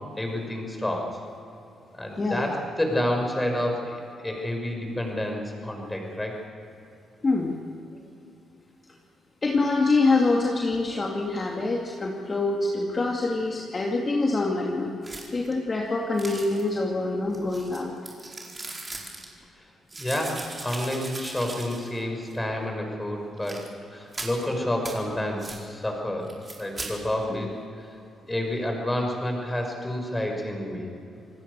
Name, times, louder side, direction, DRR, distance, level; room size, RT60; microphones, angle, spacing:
voice 1, 0.2-1.2 1.9-6.3 19.5-19.7 20.0-27.5 27.8-27.9 28.3-30.9, left 1 dB, 10° left, 2 dB, 6.1 m, -29 dB
voice 2, 7.2-7.6 9.4-14.9 15.3-17.9 27.3-27.4, left 3 dB, 30° left, -1 dB, 2.5 m, -25 dB
sound 1, 15.0-15.5 16.2-16.8 17.3-19.3 19.9-22.0 22.3-22.4 23.4-23.7 24.1-24.4 24.8-25.0 25.4-25.6 26.3-26.9, right 2 dB, 25° right, 4.8 m, -39 dB
27.5 x 19.0 x 6.9 m, 2.7 s
cardioid pair, 100°, 0 cm